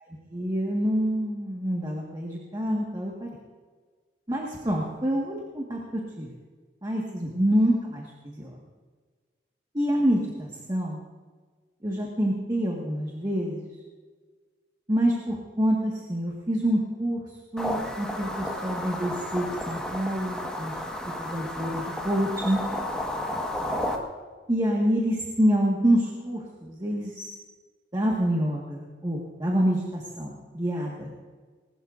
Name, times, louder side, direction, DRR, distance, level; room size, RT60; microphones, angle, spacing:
voice 1, 0.3-3.4 4.3-6.3 6.8-8.5 9.7-11.0 11.8-13.7 14.9-17.2 17.5-20.7 21.2-22.6 24.5-27.3 27.9-31.1, equal, 20° right, -2 dB, 1.8 m, -27 dB
sound 1, 17.6-24.0, left 1 dB, 5° left, 1.6 m, -32 dB
21.0 x 19.5 x 2.7 m, 1.4 s
head